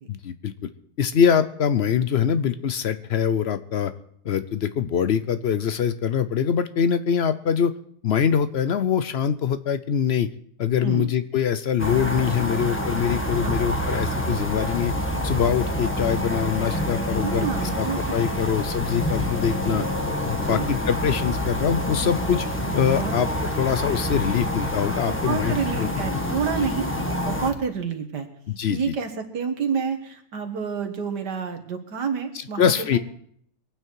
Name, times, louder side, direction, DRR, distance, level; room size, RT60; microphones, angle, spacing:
voice 1, 0.1-0.7 1.0-3.9 4.2-7.7 8.0-10.3 10.6-14.9 15.2-19.8 20.2-22.4 22.7-23.3 23.6-26.2 26.6-26.7 28.5-28.9 32.6-33.0, left 8 dB, 65° left, 12 dB, 0.6 m, -24 dB
sound 1, 11.8-27.5, equal, 10° left, 1.3 m, -27 dB
voice 2, 17.2-18.4 19.6-19.8 20.4-20.7 22.8-23.2 23.4-23.5 25.1-26.9 27.2-28.3 28.7-33.0, right 6 dB, 75° right, 6 dB, 2.1 m, -29 dB
23.5 x 9.2 x 4.6 m, 0.65 s
omnidirectional pair, 1.8 m